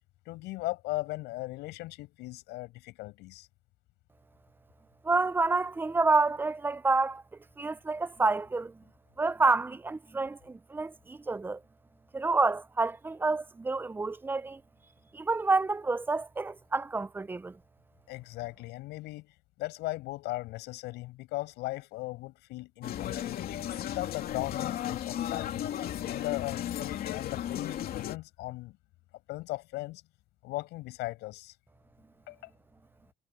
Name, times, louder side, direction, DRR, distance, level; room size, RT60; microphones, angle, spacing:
voice 1, 0.2-3.5 18.1-23.4 23.9-25.7 26.1-28.8 29.3-30.0 30.4-31.5 32.3-32.5, left 19 dB, 90° left, 6.4 m, -38 dB
voice 2, 5.0-7.2 7.6-8.8 9.2-11.6 12.1-14.6 15.1-17.6, right 3 dB, 10° right, 0.5 m, -28 dB
sound 1, 22.8-28.2, left 11 dB, 65° left, 2.9 m, -35 dB
cardioid pair, 110°, 17 cm